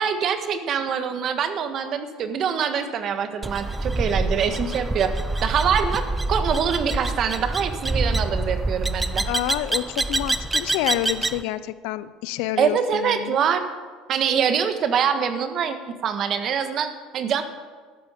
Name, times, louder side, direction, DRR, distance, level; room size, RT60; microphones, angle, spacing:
voice 1, 0.0-5.1 5.4-9.2 12.6-13.6 14.1-17.4, right 7 dB, 50° right, 8 dB, 1.5 m, -24 dB
sound 1, 3.4-11.4, right 2 dB, 15° right, 0.6 m, -26 dB
voice 2, 9.2-13.4, left 14 dB, 75° left, 16 dB, 0.6 m, -28 dB
13.0 x 12.5 x 5.1 m, 1.5 s
supercardioid pair, 95°, 0 cm